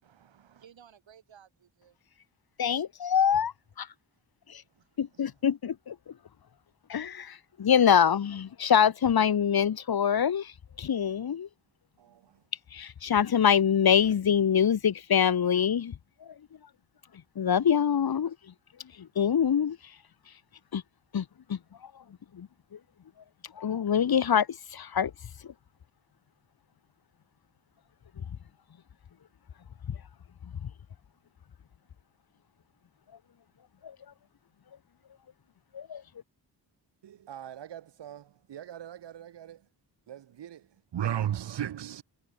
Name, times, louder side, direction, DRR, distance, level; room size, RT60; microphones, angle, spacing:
voice 1, 0.0-2.0 3.9-4.2 4.5-5.5, right 8 dB, 90° right, 7.2 m, -59 dB
voice 2, 2.6-3.5 3.8-3.9 4.5-4.6 5.0-5.9 6.9-10.5 10.8-11.5 12.7-15.9 17.4-18.3 19.0-19.8 20.7-20.8 21.1-21.2 21.5-21.6 22.3-22.5 23.6-25.1 33.8-33.9 35.7-36.0, left 8 dB, 55° left, 1.1 m, -25 dB
voice 3, 37.3-38.2 38.5-39.6 40.1-40.6 40.9-42.0, right 10 dB, 70° right, 0.9 m, -35 dB
cardioid pair, 70°, 44 cm